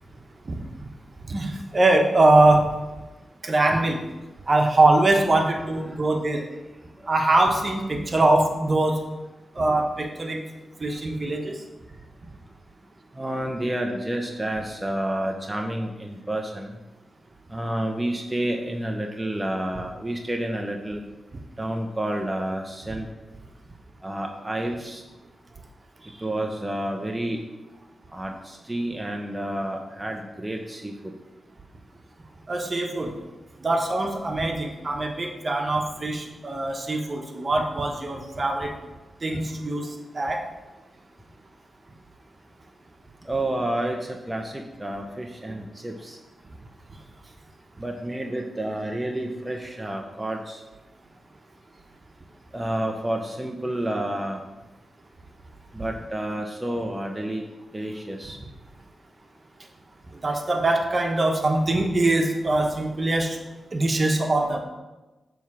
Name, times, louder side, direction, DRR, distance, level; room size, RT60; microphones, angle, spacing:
voice 1, 1.3-2.7 3.4-4.0 4.5-6.5 7.1-9.0 9.5-10.4 10.8-11.6 32.5-33.1 33.6-38.8 39.2-40.4 60.1-63.4 63.7-64.6, right 2 dB, 45° right, 3 dB, 1.2 m, -22 dB
voice 2, 13.1-16.8 17.5-21.1 21.6-23.1 24.0-25.0 26.0-27.4 28.1-31.1 43.2-46.2 47.8-50.6 52.5-54.4 55.7-57.4 57.7-58.4, right 1 dB, 15° right, 1 dB, 0.8 m, -30 dB
7.1 x 3.5 x 6.2 m, 1.1 s
cardioid pair, 50°, 0 cm